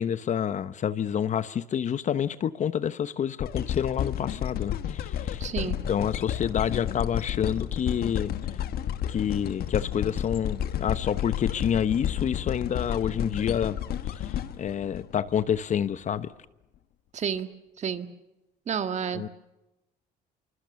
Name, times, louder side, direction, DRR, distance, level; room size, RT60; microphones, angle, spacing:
voice 1, 0.0-8.3 9.1-13.8 14.1-16.3 19.1-19.3, left 8 dB, 45° left, 1.0 m, -28 dB
sound 1, 3.4-15.6 16.2-16.3, left 10 dB, 65° left, 1.5 m, -31 dB
voice 2, 5.4-5.8 17.1-17.5 17.8-18.1 18.7-19.3, right 7 dB, 45° right, 1.8 m, -30 dB
25.5 x 24.0 x 7.0 m
cardioid pair, 110°, 17 cm